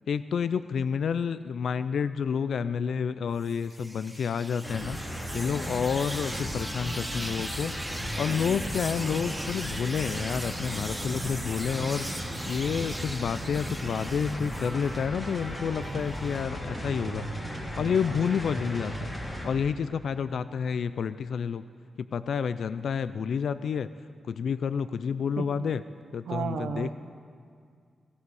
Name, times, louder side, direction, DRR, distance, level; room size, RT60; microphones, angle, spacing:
voice 1, 0.1-7.7 8.2-17.3 17.8-19.1 19.4-21.6 22.0-23.9 24.2-25.8 26.1-26.9, left 6 dB, 70° left, 14 dB, 0.3 m, -29 dB
sound 1, 3.4-15.0 15.5-16.4, right 1 dB, ahead, 1.2 m, -39 dB
sound 2, 4.6-19.4, equal, 20° left, 2.9 m, -36 dB
voice 2, 25.4-25.7 26.3-26.9, right 6 dB, 75° right, 5 dB, 0.7 m, -33 dB
17.0 x 16.5 x 4.8 m, 2.1 s
wide cardioid pair, 130°, 0 cm